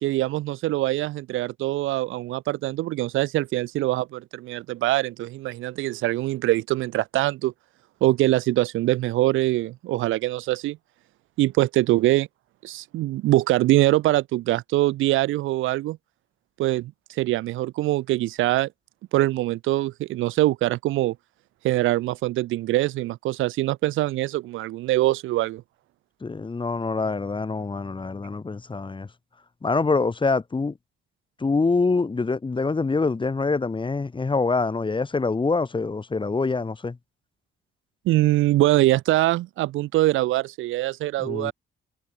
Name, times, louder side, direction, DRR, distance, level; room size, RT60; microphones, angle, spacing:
voice 1, 0.0-7.5 8.0-10.8 11.4-12.3 12.6-16.0 16.6-18.7 19.1-21.1 21.6-25.6 38.0-41.5, right 16 dB, 90° right, 1.4 m, -23 dB
voice 2, 26.2-29.1 29.6-30.7 31.4-37.0 41.2-41.5, left 4 dB, 25° left, 2.1 m, -25 dB
cardioid pair, 90°, 20 cm